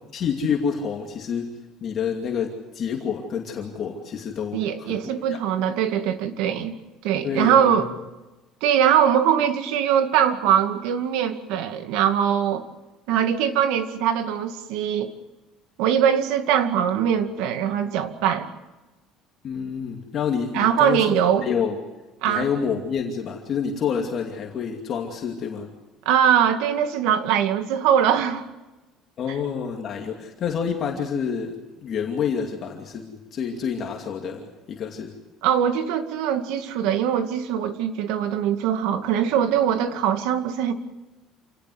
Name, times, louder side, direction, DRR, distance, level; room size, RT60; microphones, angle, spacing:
voice 1, 0.1-1.5 1.8-5.0 5.3-5.4 7.2-7.9 19.4-21.8 22.3-25.7 29.2-35.2, left 7 dB, 35° left, 1 dB, 2.6 m, -28 dB
voice 2, 4.5-6.7 7.0-7.9 8.6-12.6 13.1-15.2 15.8-18.5 20.5-21.5 22.2-22.5 26.1-28.4 35.4-40.7, right 9 dB, 80° right, 8 dB, 2.3 m, -22 dB
28.0 x 18.5 x 8.0 m, 1.1 s
cardioid pair, 170°, 0 cm